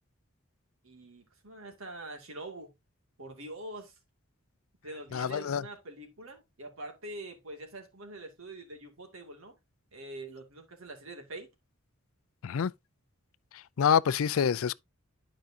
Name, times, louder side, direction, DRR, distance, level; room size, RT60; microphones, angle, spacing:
voice 1, 0.8-2.7 3.2-3.9 4.8-9.6 9.9-11.5, right 2 dB, 70° right, 2.3 m, -44 dB
voice 2, 5.1-5.6 12.4-12.7 13.8-14.7, left 7 dB, 70° left, 0.4 m, -26 dB
12.0 x 5.1 x 2.7 m
head